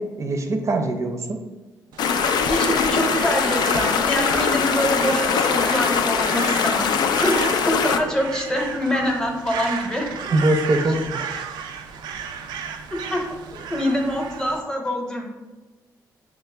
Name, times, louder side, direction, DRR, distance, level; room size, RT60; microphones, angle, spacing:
voice 1, 0.0-1.4 10.3-11.3, right 1 dB, 45° right, 6 dB, 0.6 m, -22 dB
Crow, 1.9-14.6, right 7 dB, 90° right, 0.3 m, -34 dB
sound 1, 2.0-8.0, left 6 dB, 75° left, 0.3 m, -22 dB
voice 2, 2.5-7.4 7.6-10.1 12.9-13.2 13.7-15.2, equal, 10° left, 1 dB, 0.8 m, -25 dB
5.9 x 2.0 x 3.2 m, 1.2 s
cardioid pair, 85°, 7 cm